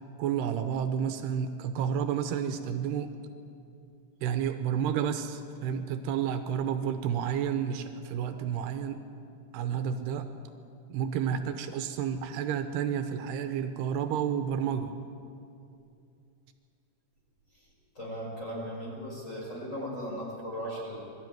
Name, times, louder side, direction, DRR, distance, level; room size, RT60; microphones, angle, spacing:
voice 1, 0.2-3.1 4.2-9.0 9.5-10.3 10.9-14.9, right 8 dB, 85° right, 8 dB, 2.9 m, -30 dB
voice 2, 18.0-21.0, equal, 15° left, -3 dB, 5.3 m, -37 dB
22.0 x 13.0 x 9.3 m, 2.5 s
omnidirectional pair, 4.8 m